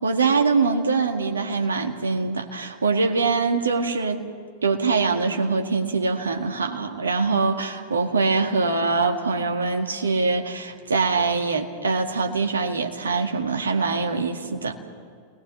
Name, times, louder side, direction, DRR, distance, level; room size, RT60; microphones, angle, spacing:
voice 1, 0.0-4.2 4.6-14.8, right 4 dB, 70° right, 4 dB, 2.0 m, -23 dB
29.0 x 20.5 x 7.3 m, 2.1 s
figure-of-eight pair, 90°, 0 cm